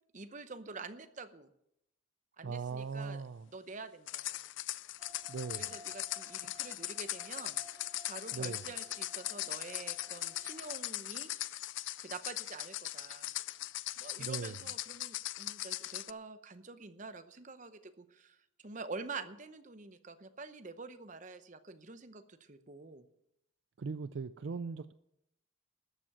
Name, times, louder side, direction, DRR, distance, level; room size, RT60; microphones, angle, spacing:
voice 1, 0.1-1.5 2.4-3.2 3.5-4.4 5.6-11.3 12.0-13.3 14.0-23.0, right 4 dB, 40° right, 10 dB, 0.8 m, -47 dB
voice 2, 2.4-3.5 5.3-5.7 8.3-8.6 14.2-14.6 23.8-24.9, right 5 dB, 60° right, 13 dB, 0.4 m, -39 dB
sound 1, 4.1-16.1, left 16 dB, 65° left, 0.4 m, -40 dB
sound 2, 5.0-10.8, equal, 15° right, 1.3 m, -57 dB
13.5 x 7.5 x 7.3 m, 0.79 s
head